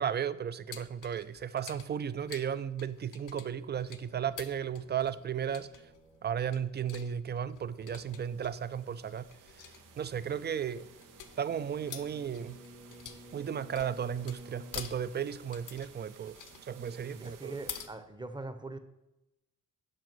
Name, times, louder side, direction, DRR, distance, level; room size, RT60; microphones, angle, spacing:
voice 1, 0.0-5.7 6.2-9.3 9.6-10.9 11.4-12.6 13.3-16.4 16.6-17.6, right 8 dB, 35° right, 0.4 m, -35 dB
sound 1, 0.7-17.9, left 8 dB, 75° left, 0.9 m, -49 dB
sound 2, 3.3-14.9, right 1 dB, 60° right, 2.1 m, -56 dB
sound 3, 7.5-17.9, right 8 dB, 80° right, 0.8 m, -58 dB
voice 2, 17.1-18.8, right 2 dB, 15° right, 0.8 m, -42 dB
7.6 x 5.1 x 6.1 m
cardioid pair, 90°, 32 cm